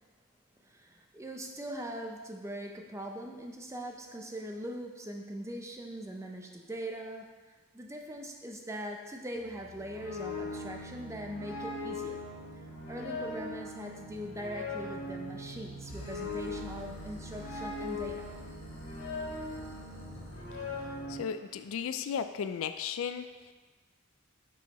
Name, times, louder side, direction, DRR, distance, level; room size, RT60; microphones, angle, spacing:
voice 1, 0.6-7.4 7.7-12.2 12.5-18.3, equal, 15° right, 2 dB, 0.6 m, -41 dB
sound 1, 9.4-21.2, left 2 dB, 80° left, 1.9 m, -40 dB
sound 2, 15.9-21.1, equal, 30° left, 1.1 m, -48 dB
voice 2, 21.1-23.5, left 7 dB, 65° left, 9 dB, 0.3 m, -35 dB
7.4 x 5.5 x 3.0 m, 1.3 s
head